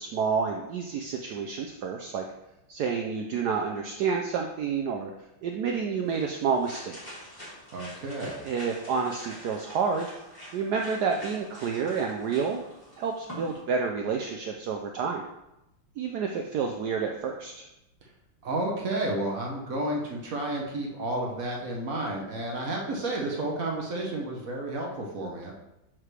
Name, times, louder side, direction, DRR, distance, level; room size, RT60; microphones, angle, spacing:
voice 1, 0.0-2.3 2.7-5.1 5.4-7.2 8.4-10.1 10.5-12.6 13.0-15.2 16.0-17.7, right 5 dB, 85° right, 2 dB, 0.8 m, -29 dB
sound 1, 6.0-13.6, equal, 10° left, 2.2 m, -46 dB
voice 2, 7.7-8.4 18.0-18.1 18.4-25.5, right 1 dB, 55° right, -1 dB, 1.1 m, -31 dB
7.4 x 4.7 x 3.2 m, 0.89 s
omnidirectional pair, 2.3 m